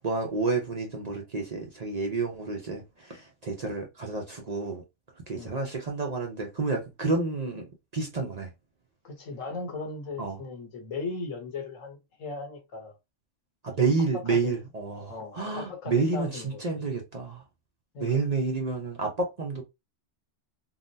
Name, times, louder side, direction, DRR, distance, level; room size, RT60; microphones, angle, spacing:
voice 1, 0.0-4.8 5.3-8.5 10.2-10.4 13.6-17.4 18.0-19.6, right 4 dB, 40° right, 0.7 m, -29 dB
voice 2, 9.0-12.9 13.8-14.5 15.1-16.8 17.9-18.2, left 4 dB, 85° left, 1.3 m, -38 dB
3.8 x 2.1 x 2.6 m
omnidirectional pair, 1.3 m